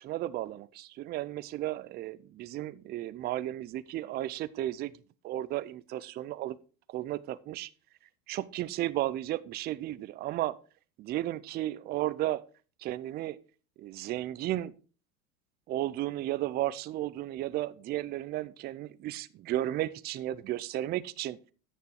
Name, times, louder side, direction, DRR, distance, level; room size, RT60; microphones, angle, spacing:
voice 1, 0.0-4.9 5.2-6.6 6.9-7.7 8.3-10.6 11.0-12.4 12.8-13.4 13.8-14.7 15.7-21.5, right 14 dB, 25° right, 16 dB, 0.3 m, -34 dB
9.1 x 6.7 x 4.6 m, 0.37 s
supercardioid pair, 120°, 42 cm